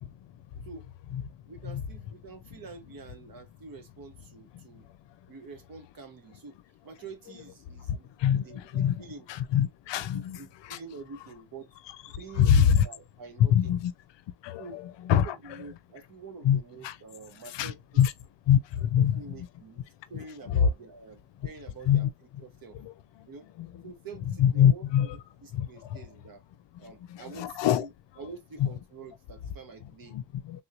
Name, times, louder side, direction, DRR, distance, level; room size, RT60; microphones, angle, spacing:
voice 1, 1.5-4.9 5.3-6.6 6.8-9.3 10.1-11.7 12.1-13.8 14.6-18.0 18.8-19.8 20.1-22.1 22.4-22.8 23.3-23.5 23.8-25.1 25.4-26.4 26.8-27.9 28.2-30.2, right 4 dB, 55° right, 1.1 m, -47 dB
voice 2, 7.9-9.0 9.5-10.4 10.7-10.8 12.4-12.8 13.5-13.9 14.4-14.8 15.1-15.3 16.4-17.0 17.5-17.7 18.0-18.1 18.5-19.1 20.1-20.7 21.9-22.1 22.7-22.9 23.6-23.7 24.4-25.1 25.5-25.7 27.1-27.9 28.6-28.7 30.1-30.6, left 9 dB, 85° left, 0.6 m, -24 dB
3.6 x 3.0 x 2.3 m
wide cardioid pair, 175°, 42 cm